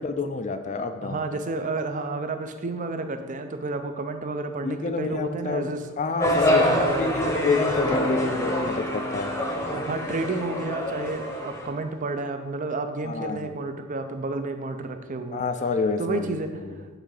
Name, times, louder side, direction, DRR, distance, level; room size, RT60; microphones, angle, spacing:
voice 1, 0.0-1.2 4.6-5.7 6.0-9.3 13.0-13.5 15.3-16.4, left 3 dB, 35° left, 9 dB, 0.4 m, -28 dB
voice 2, 1.0-5.8 6.5-7.4 9.7-15.4 16.0-16.5, right 3 dB, 35° right, 7 dB, 0.5 m, -31 dB
sound 1, 6.2-11.7, left 1 dB, 15° left, 0.8 m, -26 dB
sound 2, 7.7-11.9, left 1 dB, 70° left, 0.9 m, -35 dB
8.0 x 3.8 x 4.8 m, 1.3 s
head